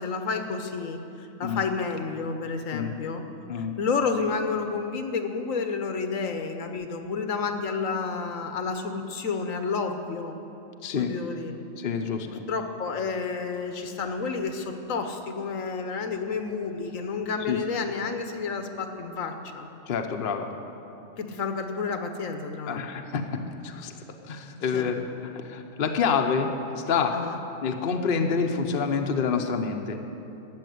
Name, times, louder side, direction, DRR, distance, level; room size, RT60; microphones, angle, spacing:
voice 1, 0.0-3.2 3.6-10.4 10.9-11.6 12.3-19.7 21.2-22.8 24.7-24.9 27.1-27.4, left 4 dB, 75° left, 6 dB, 1.3 m, -30 dB
voice 2, 10.8-11.1 11.8-12.4 17.5-17.6 19.9-20.5 22.7-23.2 23.6-23.9 24.3-26.5 26.9-27.1 27.6-30.0, left 6 dB, 50° left, 4 dB, 0.9 m, -27 dB
13.5 x 7.5 x 9.3 m, 2.9 s
omnidirectional pair, 1.4 m